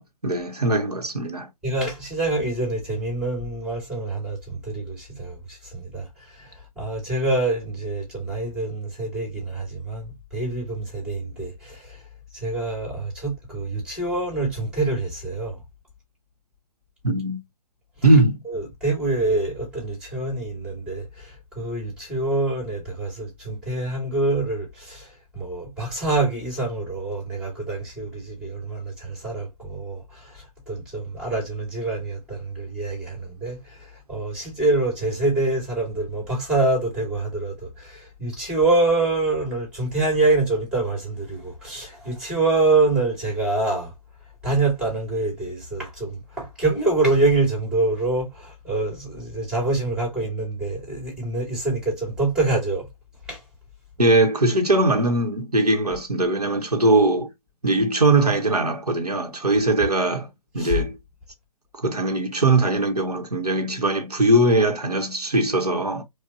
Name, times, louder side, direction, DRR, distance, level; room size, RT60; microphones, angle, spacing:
voice 1, 0.0-1.5 17.0-17.4 18.0-18.4 54.0-57.3 57.6-60.3 60.5-61.0 61.7-66.0, right 2 dB, 85° right, 1.2 m, -20 dB
voice 2, 1.6-6.1 6.3-6.5 6.8-12.0 12.3-15.6 18.4-43.9 44.4-52.9 53.3-53.4 60.6-60.8, right 2 dB, 5° right, 2.4 m, -25 dB
4.8 x 2.4 x 2.7 m
figure-of-eight pair, 130°, 20 cm